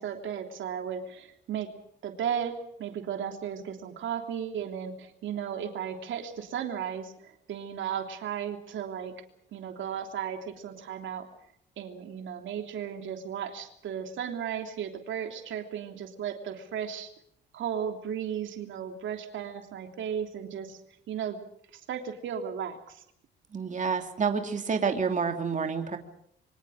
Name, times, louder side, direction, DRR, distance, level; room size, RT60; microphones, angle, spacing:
voice 1, 0.0-1.7 2.0-9.1 9.5-11.3 11.8-17.1 17.5-20.8 21.1-21.4 21.7-23.0, right 8 dB, 75° right, 4 dB, 3.2 m, -35 dB
voice 2, 23.5-26.0, right 5 dB, 40° right, 5 dB, 2.9 m, -28 dB
27.0 x 24.5 x 5.0 m, 0.71 s
cardioid pair, 90°, 20 cm